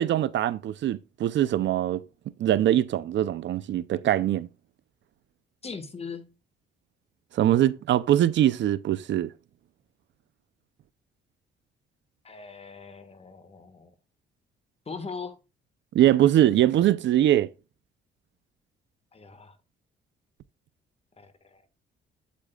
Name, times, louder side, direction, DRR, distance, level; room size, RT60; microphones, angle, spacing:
voice 1, 0.0-2.0 2.4-4.5 7.3-9.3 15.9-17.5, right 12 dB, 65° right, 0.6 m, -22 dB
voice 2, 5.6-6.3 12.2-13.9 14.8-15.3 19.1-19.6 21.2-21.7, left 5 dB, 30° left, 1.6 m, -40 dB
8.6 x 8.4 x 2.3 m
cardioid pair, 90°, 20 cm